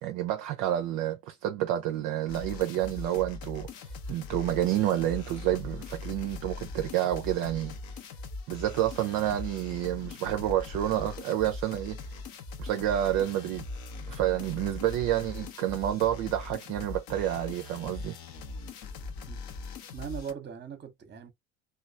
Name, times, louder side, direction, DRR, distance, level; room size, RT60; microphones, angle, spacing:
voice 1, 0.0-7.7 8.5-12.0 12.6-13.6 14.1-18.2, right 12 dB, 45° right, 0.5 m, -29 dB
sound 1, 2.3-20.3, left 3 dB, 50° left, 0.8 m, -41 dB
voice 2, 19.9-21.3, right 7 dB, 25° right, 0.8 m, -39 dB
3.0 x 2.3 x 2.4 m
figure-of-eight pair, 70°, 43 cm